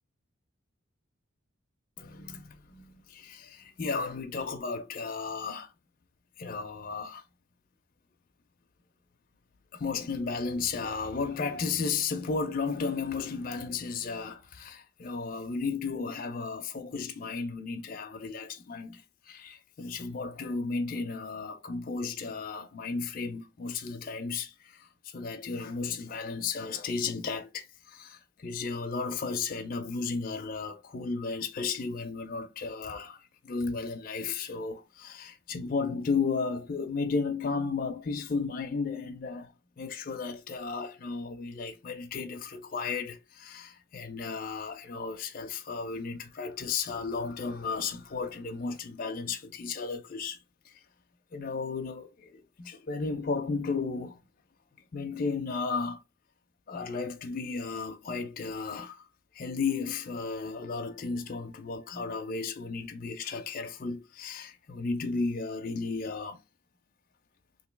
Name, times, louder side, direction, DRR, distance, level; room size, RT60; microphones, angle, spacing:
voice 1, 2.0-5.7 6.4-7.2 9.7-39.5 39.8-50.4 50.6-50.7 51.3-54.2 54.9-56.0 56.7-59.1 59.3-66.4, left 4 dB, 45° left, 0.4 m, -34 dB
2.9 x 2.7 x 3.3 m
head